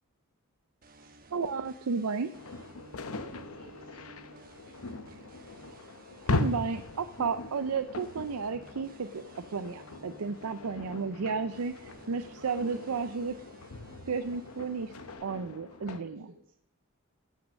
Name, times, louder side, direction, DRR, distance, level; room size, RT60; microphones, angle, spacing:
sound 1, 0.8-15.1, right 3 dB, 40° right, 1.2 m, -56 dB
voice 1, 1.3-2.3 6.3-9.2 9.5-13.3 14.1-14.9 15.2-16.3, right 5 dB, 80° right, 0.5 m, -33 dB
sound 2, 2.3-16.0, left 3 dB, 80° left, 0.9 m, -39 dB
voice 2, 3.0-5.4 12.4-13.0 15.7-16.6, right 1 dB, 60° right, 2.4 m, -55 dB
15.0 x 6.4 x 6.3 m
head